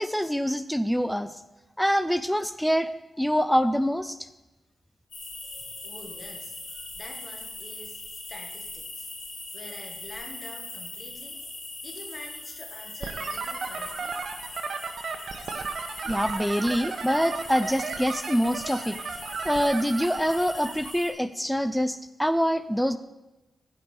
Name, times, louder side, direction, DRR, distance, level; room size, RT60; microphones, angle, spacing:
voice 1, 0.0-1.3 1.8-2.9 3.2-4.2 16.0-19.0 19.4-23.0, equal, ahead, 12 dB, 0.4 m, -25 dB
sound 1, 5.1-21.1, left 2 dB, 70° left, 4.4 m, -41 dB
voice 2, 5.4-9.1 9.5-14.2, left 1 dB, 30° left, 2 dB, 1.7 m, -46 dB
sound 2, 13.0-20.9, right 5 dB, 60° right, 1.0 m, -35 dB
15.5 x 5.3 x 6.6 m, 1.0 s
wide cardioid pair, 155°, 0 cm